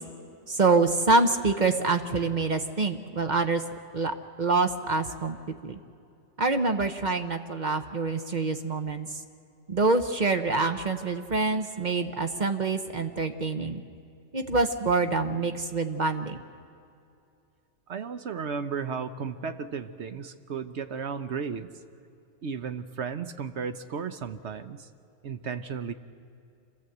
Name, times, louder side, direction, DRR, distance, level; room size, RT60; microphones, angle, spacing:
voice 1, 0.5-3.6 3.9-5.4 5.6-5.8 6.4-9.1 9.7-13.8 14.3-16.4, right 3 dB, 40° right, 7 dB, 0.9 m, -26 dB
voice 2, 17.9-21.7 22.4-24.9 25.2-25.9, right 6 dB, 60° right, 9 dB, 1.0 m, -34 dB
27.0 x 15.0 x 7.9 m, 2.6 s
omnidirectional pair, 1.4 m